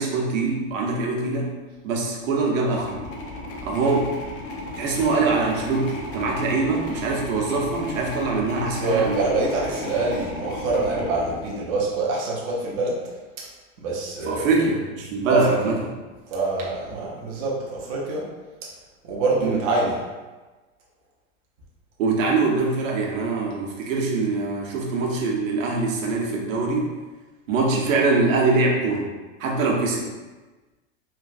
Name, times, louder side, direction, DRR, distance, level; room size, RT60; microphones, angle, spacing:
voice 1, 0.0-1.5 1.8-3.0 3.6-4.1 4.8-9.3 14.2-15.8 19.4-19.6 22.0-26.9 27.5-29.1 29.4-30.1, right 3 dB, 80° right, -1 dB, 0.8 m, -23 dB
sound 1, 2.7-12.1, left 2 dB, 45° left, 0.5 m, -35 dB
voice 2, 8.6-13.0 13.8-14.5 15.3-15.6 16.3-18.2 19.1-20.0, right 3 dB, 30° right, -5 dB, 0.4 m, -25 dB
3.1 x 2.3 x 2.5 m, 1.2 s
supercardioid pair, 165°, 39 cm